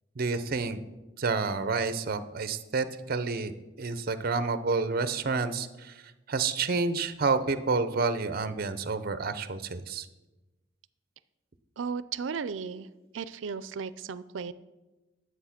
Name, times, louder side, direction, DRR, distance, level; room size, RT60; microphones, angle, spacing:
voice 1, 0.2-0.8 1.2-3.5 3.8-6.0 6.3-10.1, right 4 dB, 50° right, 12 dB, 0.7 m, -29 dB
voice 2, 11.8-12.9 13.1-14.5, right 6 dB, 90° right, 16 dB, 0.5 m, -35 dB
10.5 x 7.9 x 5.8 m, 1.1 s
head